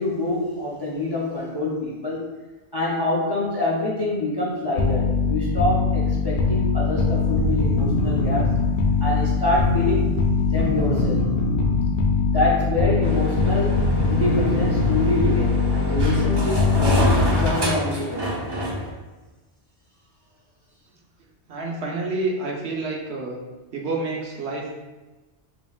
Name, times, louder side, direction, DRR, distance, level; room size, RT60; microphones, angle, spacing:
voice 1, 0.0-2.3 2.7-8.5 9.0-10.2 10.5-11.2 12.3-18.4, left 2 dB, 30° left, -5 dB, 0.5 m, -26 dB
sound 1, 4.8-17.7, left 4 dB, 65° left, 0.7 m, -22 dB
sound 2, 13.0-18.9, equal, 30° right, 0.6 m, -27 dB
voice 2, 21.5-23.4 23.7-24.8, right 3 dB, 70° right, -1 dB, 1.0 m, -28 dB
5.1 x 3.0 x 2.3 m, 1.2 s
omnidirectional pair, 1.2 m